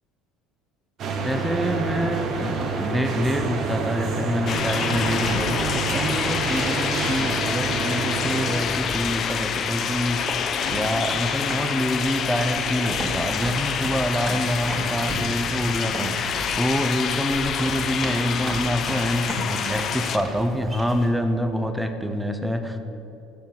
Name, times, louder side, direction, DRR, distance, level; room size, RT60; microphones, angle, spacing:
sound 1, 1.0-8.5, right 4 dB, 50° right, 1.1 m, -28 dB
voice 1, 1.2-22.8, equal, 5° right, 7 dB, 0.7 m, -26 dB
sound 2, 4.3-21.1, right 1 dB, 20° right, 2.3 m, -36 dB
sound 3, 4.5-20.2, left 7 dB, 45° left, 0.5 m, -27 dB
7.1 x 6.9 x 7.8 m, 2.9 s
cardioid pair, 120°, 0 cm